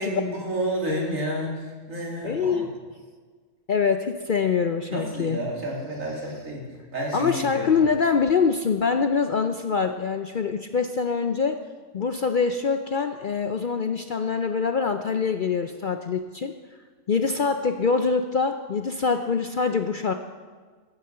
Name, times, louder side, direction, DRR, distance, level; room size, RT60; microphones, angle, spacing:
voice 1, 0.0-2.6 4.9-7.8, equal, 60° right, -2 dB, 3.3 m, -30 dB
voice 2, 2.2-2.7 3.7-5.4 7.1-11.6 11.9-16.5 17.1-20.1, left 5 dB, 65° left, 7 dB, 0.5 m, -24 dB
14.0 x 9.9 x 6.7 m, 1.5 s
omnidirectional pair, 1.6 m